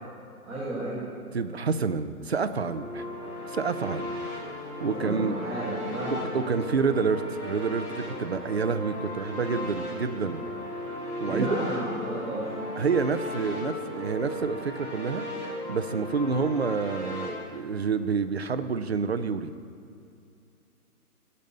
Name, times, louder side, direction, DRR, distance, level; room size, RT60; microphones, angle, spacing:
voice 1, 0.4-1.0 4.9-6.2 11.2-12.5, right 2 dB, 5° right, -16 dB, 2.3 m, -32 dB
voice 2, 1.3-3.1 3.5-4.1 4.8-5.4 6.1-10.4 11.2-11.5 12.8-15.2 15.7-19.5, right 5 dB, 45° right, 10 dB, 0.5 m, -28 dB
sound 1, 2.5-17.3, left 1 dB, 10° left, 1.7 m, -36 dB
14.0 x 5.4 x 6.6 m, 2.5 s
hypercardioid pair, 165°, 45 cm